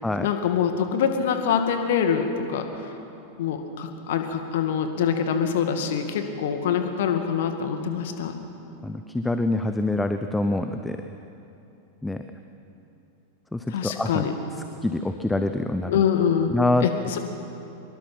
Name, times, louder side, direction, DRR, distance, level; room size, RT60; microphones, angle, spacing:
voice 1, 0.2-2.9 3.4-8.3 13.7-14.3 15.9-16.5 16.8-17.2, left 7 dB, 55° left, 6 dB, 2.1 m, -25 dB
voice 2, 8.8-11.0 12.0-12.2 13.5-14.2 14.8-16.0 16.5-16.9, left 2 dB, 5° left, 8 dB, 0.9 m, -25 dB
25.0 x 22.5 x 6.1 m, 2.8 s
figure-of-eight pair, 90°, 0 cm